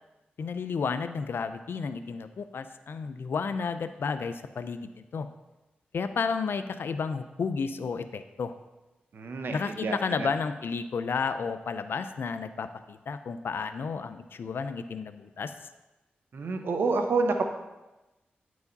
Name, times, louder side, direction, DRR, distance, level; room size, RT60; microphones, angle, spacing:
voice 1, 0.4-5.3 5.9-8.5 9.5-15.5, left 5 dB, 70° left, 11 dB, 0.5 m, -32 dB
voice 2, 9.1-10.3 16.3-17.5, right 3 dB, 70° right, 5 dB, 0.9 m, -28 dB
9.7 x 4.8 x 4.0 m, 1.0 s
cardioid pair, 50°, 4 cm